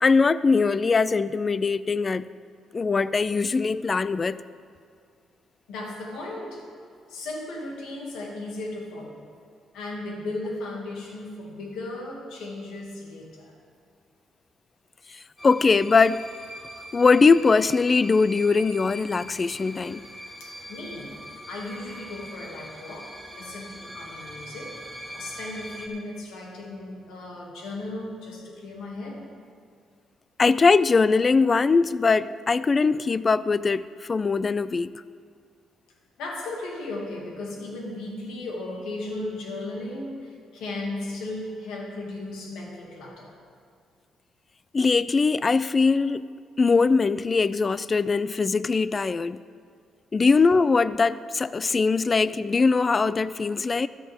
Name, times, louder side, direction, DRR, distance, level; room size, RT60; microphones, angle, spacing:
voice 1, 0.0-2.3 2.7-4.4 15.1-16.2 16.9-20.0 30.4-34.9 44.7-46.2 46.6-49.4 50.1-53.9, left 4 dB, 35° left, 0.3 m, -21 dB
voice 2, 5.7-6.6 7.1-9.2 9.7-13.5 20.4-21.2 21.5-24.8 25.1-29.2 36.2-43.3, left 2 dB, 85° left, 2.5 m, -36 dB
sound 1, 15.4-25.9, equal, 10° left, 1.8 m, -42 dB
13.5 x 13.0 x 3.7 m
cardioid pair, 90°, 0 cm